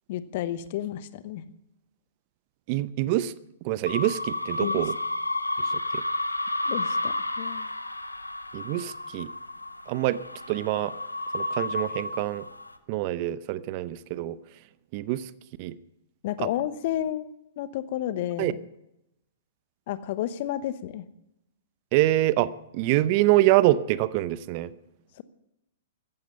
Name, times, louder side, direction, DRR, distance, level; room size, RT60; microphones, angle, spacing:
voice 1, 0.1-1.4 4.6-4.8 6.7-7.7 16.2-17.3 17.6-18.6 19.9-21.1, left 12 dB, 45° left, 14 dB, 1.0 m, -31 dB
voice 2, 2.7-3.3 3.6-4.9 5.6-6.0 8.5-9.3 9.9-10.2 10.5-10.9 11.3-12.4 12.9-14.4 14.9-15.3 15.6-15.8 16.4-16.5 18.4-18.5 21.9-24.7, right 16 dB, 40° right, 17 dB, 0.7 m, -25 dB
sound 1, 3.9-12.7, left 2 dB, 85° left, 1.2 m, -31 dB
14.5 x 14.5 x 5.6 m, 0.85 s
figure-of-eight pair, 110°, 0 cm